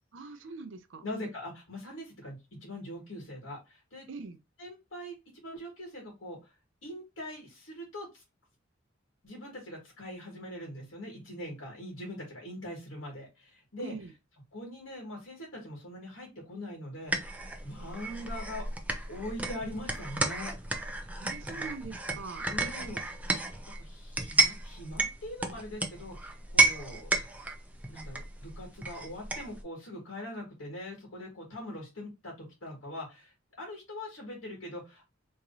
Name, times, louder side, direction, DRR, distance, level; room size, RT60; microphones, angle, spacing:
voice 1, 0.1-1.0 4.1-4.4 13.8-14.1 21.2-22.5, right 4 dB, 65° right, 0.5 m, -42 dB
voice 2, 1.0-4.0 4.6-6.4 6.8-8.2 9.2-13.9 14.5-17.4 17.6-18.6 19.1-20.5 21.5-21.7 22.5-23.0 23.7-27.1 27.9-35.1, left 1 dB, 85° left, 1.7 m, -42 dB
sound 1, 17.1-29.6, right 3 dB, 5° right, 0.5 m, -32 dB
3.6 x 3.0 x 2.6 m
head